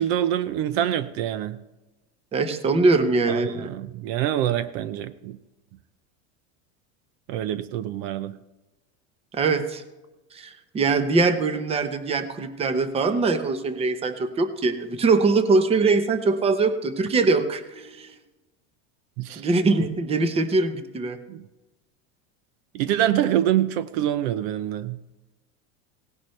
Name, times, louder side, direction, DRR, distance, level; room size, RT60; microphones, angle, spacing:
voice 1, 0.0-1.6 3.3-5.4 7.3-8.4 19.2-19.4 21.3-21.4 22.7-25.0, right 11 dB, 60° right, 14 dB, 0.6 m, -25 dB
voice 2, 2.3-3.7 9.3-9.8 10.3-18.1 19.4-21.2, right 3 dB, 15° right, 10 dB, 0.9 m, -22 dB
17.5 x 11.0 x 3.2 m, 1.1 s
supercardioid pair, 150°, 34 cm